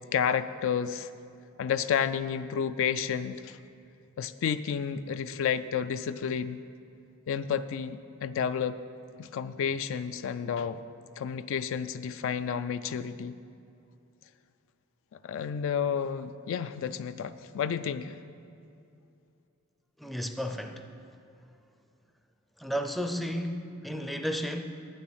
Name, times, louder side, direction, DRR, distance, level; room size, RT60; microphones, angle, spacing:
voice 1, 0.1-1.1 1.6-3.6 4.2-6.6 7.3-8.8 9.2-10.8 11.2-13.4 15.2-18.2, left 7 dB, 65° left, 12 dB, 0.3 m, -31 dB
voice 2, 20.0-20.9 22.6-24.7, equal, ahead, 6 dB, 0.4 m, -33 dB
8.8 x 7.1 x 6.4 m, 2.6 s
head